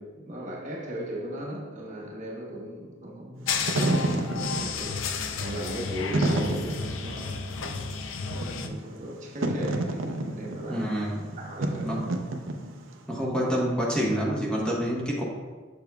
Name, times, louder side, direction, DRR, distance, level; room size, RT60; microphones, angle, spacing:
voice 1, 0.0-4.1 4.5-5.0 5.4-8.1 8.5-10.9 11.4-12.2, equal, 40° right, 1.0 m, -37 dB
Wind / Fire, 3.4-13.0, right 2 dB, 85° right, 0.6 m, -30 dB
sound 1, 3.5-8.7, left 5 dB, 80° left, 0.5 m, -32 dB
voice 2, 10.7-11.3 11.8-12.0 13.1-15.2, equal, 5° left, 1.0 m, -27 dB
7.1 x 6.8 x 2.3 m
head